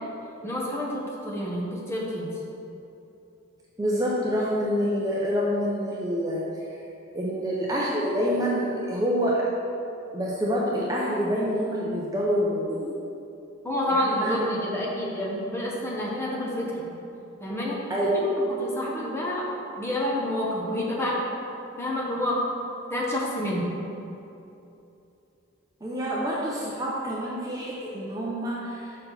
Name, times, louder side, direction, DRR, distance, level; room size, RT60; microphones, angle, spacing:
voice 1, 0.4-2.3 13.6-16.8 17.4-17.8 18.6-19.5 19.8-21.2 21.8-22.4 22.9-23.6, left 1 dB, 15° left, -4 dB, 0.9 m, -28 dB
voice 2, 3.8-6.4 7.1-9.5 10.1-12.9 13.9-14.9 17.9-18.4 25.8-29.0, equal, 15° right, -5 dB, 0.6 m, -27 dB
5.4 x 4.2 x 5.7 m, 2.8 s
head